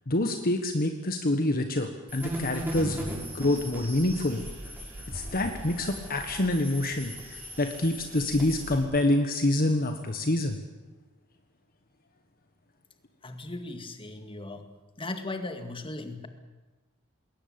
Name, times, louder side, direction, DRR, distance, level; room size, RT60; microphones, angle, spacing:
voice 1, 0.1-4.4 5.1-10.6, left 1 dB, 45° left, 6 dB, 1.4 m, -27 dB
sound 1, 2.1-8.8, equal, 10° right, 5.8 m, -38 dB
voice 2, 13.2-14.6 15.0-16.3, left 2 dB, 25° left, 7 dB, 2.1 m, -37 dB
20.5 x 18.5 x 8.8 m, 1.2 s
head